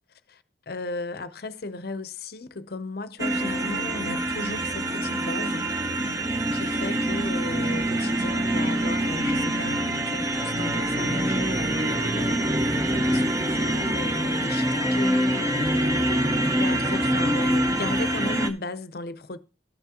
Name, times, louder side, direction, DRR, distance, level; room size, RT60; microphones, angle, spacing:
voice 1, 0.3-5.7 6.5-19.4, left 2 dB, 55° left, 0.6 m, -36 dB
sound 1, 3.2-18.5, right 1 dB, 20° right, 0.7 m, -25 dB
13.5 x 6.0 x 2.9 m
head